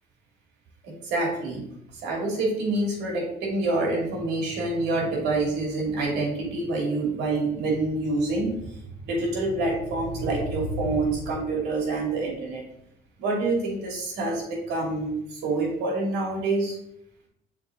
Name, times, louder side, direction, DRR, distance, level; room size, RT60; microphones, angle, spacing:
voice 1, 0.8-1.6 2.0-8.5 9.0-12.6 13.2-16.8, right 2 dB, 90° right, -2 dB, 2.5 m, -27 dB
6.6 x 4.1 x 3.8 m, 0.76 s
cardioid pair, 110°, 17 cm